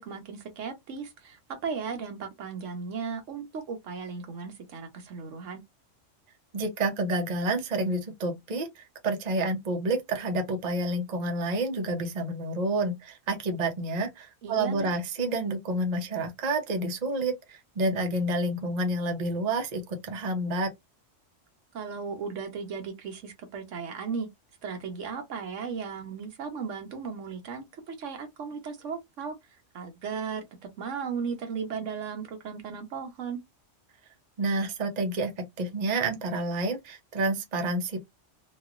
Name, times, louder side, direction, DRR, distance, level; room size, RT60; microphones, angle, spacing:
voice 1, 0.0-5.6 14.4-14.9 21.7-24.3 24.6-29.4 29.7-30.4 30.8-33.4, right 5 dB, 80° right, 1.1 m, -36 dB
voice 2, 6.5-20.7 34.4-35.3 35.6-38.0, right 2 dB, 40° right, 0.8 m, -29 dB
3.0 x 2.5 x 2.4 m
omnidirectional pair, 1.3 m